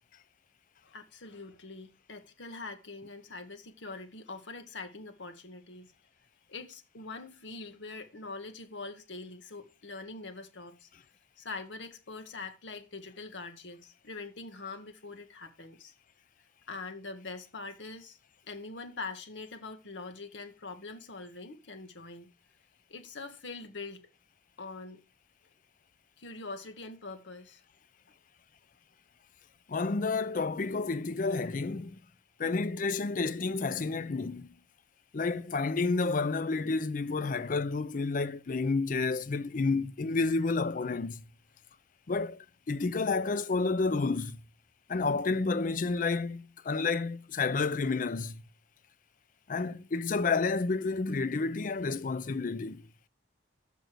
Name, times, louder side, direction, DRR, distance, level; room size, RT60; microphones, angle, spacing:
voice 1, 0.8-5.9 6.5-10.9 11.4-15.9 16.7-18.2 18.5-22.3 22.9-24.1 24.6-25.0 26.2-27.6, left 3 dB, 75° left, 1.2 m, -43 dB
voice 2, 29.7-32.0 32.4-34.5 35.1-41.2 42.1-44.4 44.9-48.4 49.5-52.9, left 3 dB, 45° left, 0.5 m, -30 dB
6.2 x 5.2 x 6.5 m
head